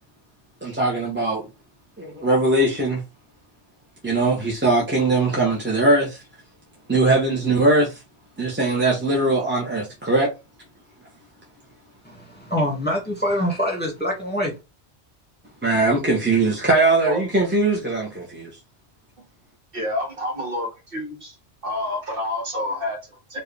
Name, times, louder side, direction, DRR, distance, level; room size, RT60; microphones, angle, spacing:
voice 1, 0.6-1.5 2.0-3.0 4.0-6.2 6.9-8.0 8.4-10.3 15.6-18.5, right 2 dB, 10° right, 1.0 m, -20 dB
voice 2, 12.0-14.6, equal, 10° left, 1.7 m, -25 dB
voice 3, 19.7-21.4 21.6-23.4, left 1 dB, 55° right, 1.6 m, -28 dB
4.6 x 2.7 x 3.3 m
omnidirectional pair, 1.2 m